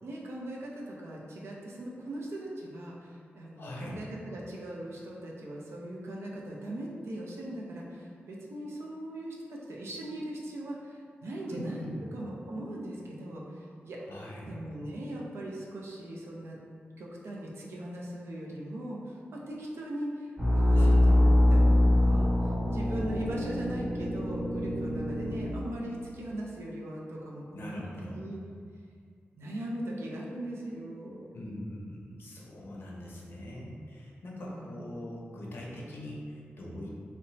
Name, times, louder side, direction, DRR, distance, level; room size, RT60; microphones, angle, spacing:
voice 1, 0.0-11.8 12.1-14.0 14.4-16.6 17.0-28.4 29.4-31.2 34.4-34.8, right 1 dB, 80° right, -3 dB, 0.4 m, -39 dB
voice 2, 3.6-4.0 11.5-12.0 14.1-14.5 20.8-21.5 27.5-28.2 31.3-37.0, left 1 dB, 60° left, -3 dB, 0.5 m, -42 dB
sound 1, 20.4-25.5, left 1 dB, 30° right, 0.8 m, -24 dB
2.9 x 2.1 x 2.6 m, 2.2 s
wide cardioid pair, 125°, 4 cm